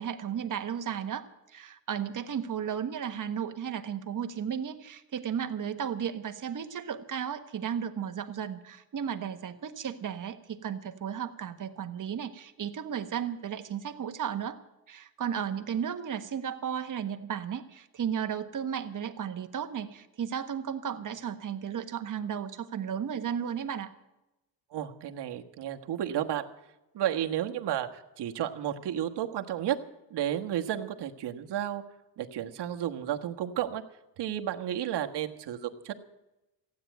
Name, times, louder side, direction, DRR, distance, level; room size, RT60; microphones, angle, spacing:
voice 1, 0.0-14.6 14.9-23.9, right 8 dB, 45° right, 8 dB, 1.4 m, -34 dB
voice 2, 24.7-26.4 26.9-29.8 30.1-31.8 32.2-33.8 34.2-35.9, right 11 dB, 70° right, 5 dB, 1.5 m, -32 dB
15.5 x 9.5 x 9.1 m, 0.95 s
cardioid pair, 115°, 42 cm